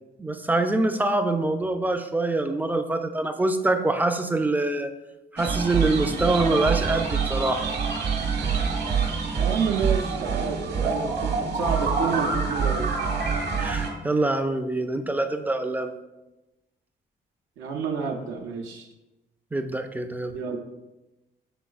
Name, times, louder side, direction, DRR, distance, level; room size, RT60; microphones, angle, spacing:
voice 1, 0.2-4.9 5.3-7.7 13.6-15.9 19.5-20.4, right 2 dB, 10° right, 7 dB, 0.3 m, -25 dB
sound 1, 5.4-13.9, right 5 dB, 60° right, 1.0 m, -26 dB
voice 2, 9.4-12.9 17.6-18.9 20.3-20.6, right 6 dB, 90° right, 1 dB, 0.5 m, -29 dB
6.0 x 3.7 x 2.3 m, 1.0 s
cardioid pair, 90°, 20 cm